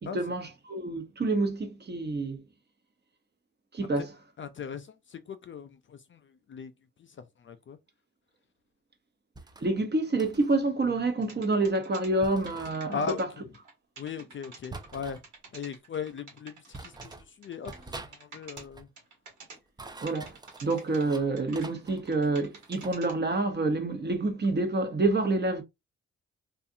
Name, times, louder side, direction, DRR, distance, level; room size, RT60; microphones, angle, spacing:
voice 1, 0.0-2.4 3.7-4.1 9.6-13.3 20.0-25.6, right 2 dB, 30° right, 0.9 m, -28 dB
voice 2, 4.4-6.2 6.5-6.7 7.0-7.1 7.4-7.8 12.9-13.2 14.0-15.2 15.5-17.7 18.0-18.9, left 6 dB, 40° left, 0.4 m, -38 dB
sound 1, 9.3-9.7 10.2-10.6 12.2-12.7 14.7-15.2 16.1-16.2 16.7-17.3 17.7-18.1 18.4-18.9 19.6-21.3 21.5-23.0, right 3 dB, 15° right, 0.5 m, -46 dB
sound 2, 11.2-12.1 12.5-13.2 13.5-13.7 14.0-17.1 17.4-18.6 19.0-19.6 20.1-21.0 21.4-23.1, right 4 dB, 70° right, 1.4 m, -48 dB
2.5 x 2.4 x 2.6 m
supercardioid pair, 50°, 32 cm